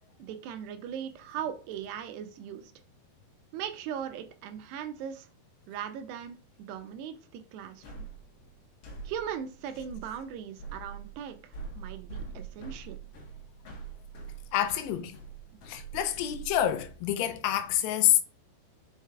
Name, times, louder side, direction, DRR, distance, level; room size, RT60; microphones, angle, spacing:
voice 1, 0.2-2.7 3.5-5.3 5.7-8.1 9.1-13.0 15.5-15.6, right 9 dB, 85° right, 2.7 m, -39 dB
sound 1, 7.8-17.0, right 5 dB, 65° left, 1.5 m, -44 dB
voice 2, 14.5-15.2 15.7-18.2, left 11 dB, 80° left, 2.6 m, -27 dB
5.7 x 5.5 x 3.5 m
omnidirectional pair, 4.9 m